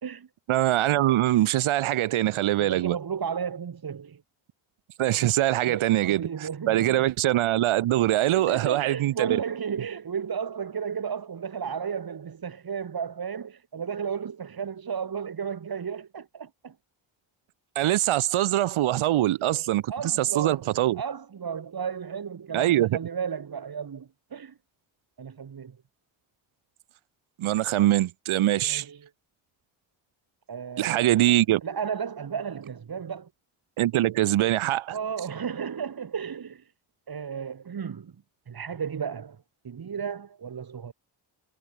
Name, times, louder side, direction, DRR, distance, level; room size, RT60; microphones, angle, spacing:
voice 1, 0.5-3.0 5.0-9.3 17.8-21.0 22.5-22.9 27.4-28.8 30.8-31.6 33.8-34.9, right 14 dB, 90° right, 2.6 m, -23 dB
voice 2, 2.6-4.2 5.6-7.1 8.3-16.7 19.9-24.5 25.2-25.8 28.6-29.1 30.5-31.3 31.6-33.3 34.9-36.7 37.1-38.1 38.5-39.4 39.6-40.9, right 7 dB, 50° right, 2.9 m, -34 dB
cardioid pair, 70°, 47 cm